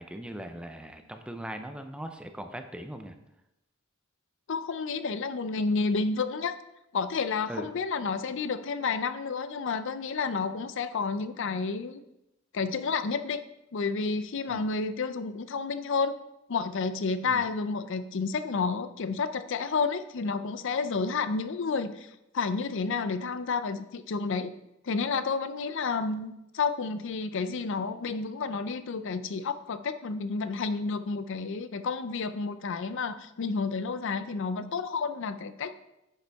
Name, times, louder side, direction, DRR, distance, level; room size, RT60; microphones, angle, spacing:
voice 1, 0.0-3.2 7.5-7.7 14.5-14.7 17.3-17.4, right 1 dB, 5° right, 6 dB, 0.5 m, -40 dB
voice 2, 4.5-6.6 6.9-12.0 12.5-13.4 13.7-16.1 16.5-24.5 24.8-35.7, left 4 dB, 60° left, 12 dB, 0.5 m, -30 dB
9.5 x 6.7 x 3.5 m, 0.87 s
head